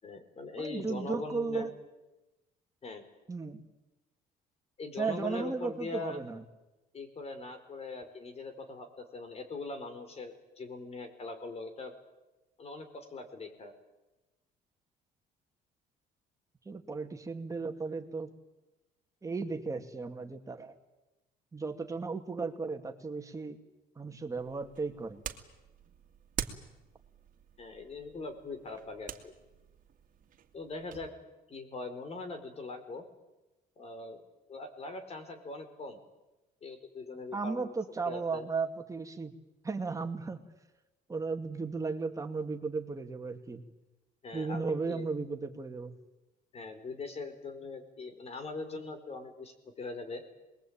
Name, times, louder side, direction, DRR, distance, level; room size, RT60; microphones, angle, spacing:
voice 1, 0.0-1.7 2.8-3.0 4.8-6.2 6.9-11.9 12.6-13.7 27.6-29.3 30.5-31.1 31.5-33.0 33.8-34.2 34.5-36.0 36.6-37.7 38.1-38.5 44.2-45.1 46.5-50.2, left 3 dB, 40° left, 8 dB, 4.8 m, -41 dB
voice 2, 0.6-1.7 3.3-3.6 5.0-6.4 16.6-18.3 19.2-20.7 21.5-23.6 24.0-25.2 37.3-39.3 39.6-40.4 41.1-43.6 44.3-46.0, right 4 dB, 20° right, 5 dB, 2.6 m, -35 dB
sound 1, 24.4-31.1, right 9 dB, 50° right, 2.4 m, -45 dB
27.0 x 21.5 x 8.9 m, 1.0 s
cardioid pair, 110°, 17 cm